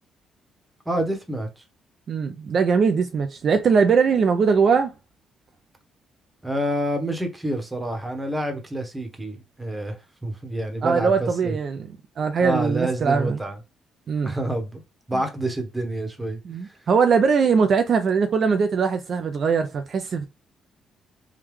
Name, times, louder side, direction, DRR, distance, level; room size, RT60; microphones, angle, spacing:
voice 1, 0.9-1.5 6.4-10.0 10.2-11.6 12.4-13.6 14.2-14.8 15.1-16.4, right 1 dB, 15° right, 1.1 m, -27 dB
voice 2, 2.1-4.9 10.8-13.4 14.1-14.3 15.1-15.2 16.4-20.3, right 5 dB, 55° right, 0.4 m, -21 dB
3.5 x 2.2 x 3.1 m
cardioid pair, 90°, 0 cm